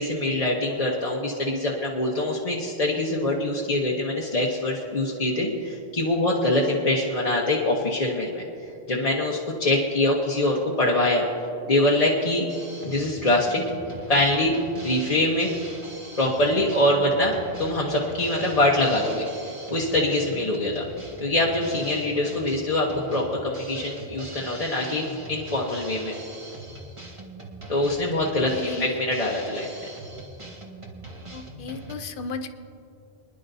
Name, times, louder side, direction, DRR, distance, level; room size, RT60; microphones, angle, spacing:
voice 1, 0.0-8.4 8.9-11.3 11.7-12.4 12.8-13.6 14.1-14.5 14.8-15.5 16.2-19.3 19.7-20.9 21.2-26.2 27.7-29.9, left 1 dB, 35° left, -4 dB, 1.0 m, -24 dB
Drum kit, 12.5-31.9, right 2 dB, 30° right, 1.3 m, -41 dB
voice 2, 28.5-29.0 31.3-32.5, left 4 dB, 60° left, 9 dB, 0.8 m, -34 dB
25.0 x 10.5 x 2.7 m, 2.6 s
omnidirectional pair, 1.1 m